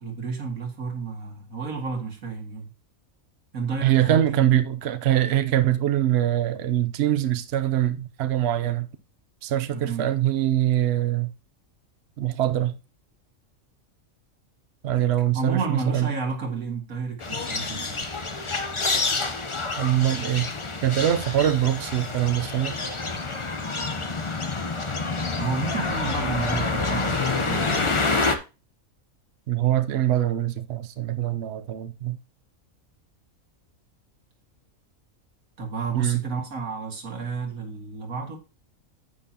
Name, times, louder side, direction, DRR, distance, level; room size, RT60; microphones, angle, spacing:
voice 1, 0.0-2.7 3.5-4.5 9.7-10.1 15.3-18.1 25.4-28.1 35.6-38.4, right 4 dB, 90° right, 2.5 m, -31 dB
voice 2, 3.8-8.9 9.4-11.3 12.2-12.8 14.8-16.1 19.8-20.5 20.8-22.8 29.5-32.2 35.9-36.2, right 12 dB, 60° right, 0.8 m, -23 dB
sound 1, 17.2-28.4, left 3 dB, 25° left, 0.8 m, -27 dB
9.8 x 8.9 x 2.9 m
omnidirectional pair, 1.4 m